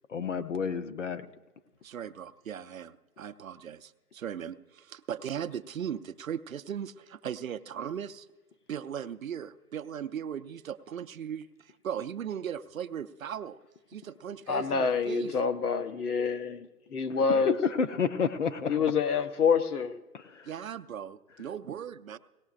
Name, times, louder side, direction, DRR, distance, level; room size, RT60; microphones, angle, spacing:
voice 1, 0.1-1.2 17.2-18.8 20.1-20.5, left 6 dB, 50° left, 10 dB, 0.7 m, -30 dB
voice 2, 1.8-8.3 8.7-13.6 13.9-15.3 20.4-22.2, right 8 dB, 60° right, 11 dB, 0.5 m, -38 dB
voice 3, 14.5-17.6 18.7-20.0, left 5 dB, 75° left, 9 dB, 0.9 m, -27 dB
18.0 x 15.0 x 2.4 m, 1.1 s
hypercardioid pair, 170°, 46 cm